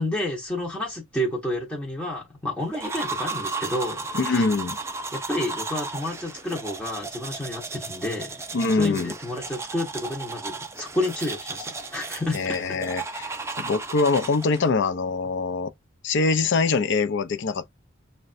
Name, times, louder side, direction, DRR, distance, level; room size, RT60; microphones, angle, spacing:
voice 1, 0.0-4.5 5.1-8.4 8.8-12.6, left 1 dB, 5° left, 0.7 m, -30 dB
sound 1, 2.7-14.7, right 3 dB, 15° right, 0.4 m, -34 dB
voice 2, 4.1-4.8 8.5-9.1 12.3-13.3 13.6-15.7 16.0-17.7, left 4 dB, 60° left, 0.5 m, -24 dB
6.4 x 2.2 x 2.4 m
head